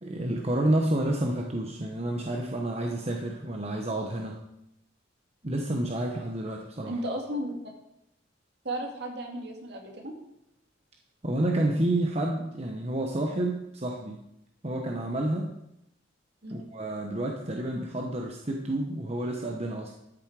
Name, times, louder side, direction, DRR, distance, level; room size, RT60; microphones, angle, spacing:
voice 1, 0.0-4.4 5.4-7.0 11.2-14.2 14.6-15.5 16.5-20.0, right 1 dB, 35° right, 1 dB, 1.0 m, -29 dB
voice 2, 6.9-7.5 8.6-10.1 16.4-16.6, right 1 dB, 60° right, 1 dB, 2.4 m, -34 dB
13.0 x 7.3 x 4.8 m, 0.82 s
head